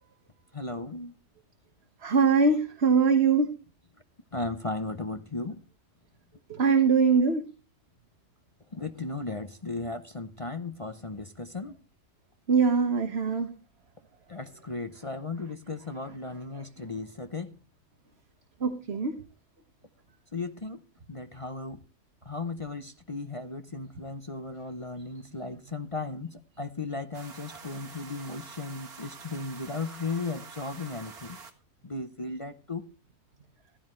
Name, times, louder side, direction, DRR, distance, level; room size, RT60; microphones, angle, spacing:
voice 1, 0.5-1.1 4.3-5.6 8.7-11.7 14.3-17.5 20.3-20.8 21.1-21.8 22.2-31.4 31.8-32.8, left 3 dB, 35° left, 0.5 m, -36 dB
voice 2, 2.0-3.5 6.5-7.4 12.5-13.5 18.6-19.1, right 5 dB, 45° right, 1.6 m, -22 dB
sound 1, 27.1-31.5, right 5 dB, 70° right, 2.3 m, -47 dB
15.0 x 15.0 x 3.2 m
omnidirectional pair, 1.6 m